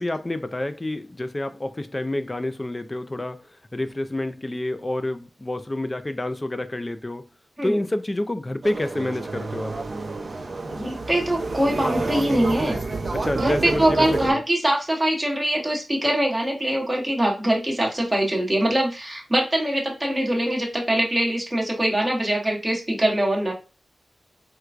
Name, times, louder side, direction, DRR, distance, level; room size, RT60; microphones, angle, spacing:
voice 1, 0.0-7.3 7.6-9.7 13.2-14.4, left 1 dB, 20° left, 0.3 m, -28 dB
sound 1, 8.6-14.3, right 3 dB, 45° right, 0.6 m, -29 dB
voice 2, 10.7-12.8 13.4-23.5, right 1 dB, 15° right, 1.0 m, -23 dB
4.4 x 2.2 x 2.5 m
wide cardioid pair, 135°, 0 cm